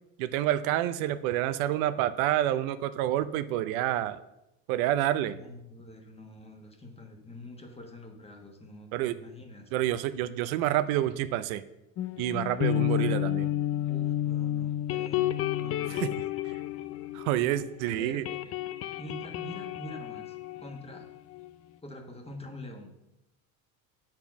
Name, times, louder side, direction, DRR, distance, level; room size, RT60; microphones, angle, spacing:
voice 1, 0.2-4.2 4.7-5.4 8.9-9.2 9.7-11.6 12.2-13.5 15.9-16.1 17.1-18.2, right 13 dB, 75° right, 13 dB, 0.6 m, -28 dB
voice 2, 5.2-9.7 13.9-16.3 17.8-18.4 19.0-21.1 21.8-22.9, left 1 dB, 15° left, 4 dB, 1.3 m, -45 dB
sound 1, 12.0-17.8 18.0-21.5, left 13 dB, 35° left, 0.4 m, -31 dB
8.0 x 4.5 x 5.9 m, 0.89 s
supercardioid pair, 110°, 42 cm